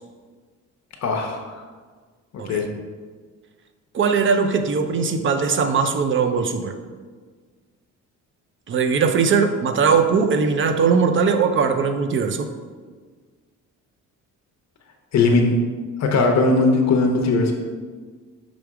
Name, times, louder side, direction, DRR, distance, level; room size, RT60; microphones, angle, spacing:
voice 1, 1.0-1.6 2.5-2.7 15.1-15.6 16.0-17.5, left 3 dB, 55° left, 2 dB, 0.8 m, -19 dB
voice 2, 3.9-6.8 8.7-12.5, right 5 dB, 40° right, 7 dB, 0.5 m, -20 dB
6.1 x 3.4 x 4.7 m, 1.5 s
cardioid pair, 140°, 32 cm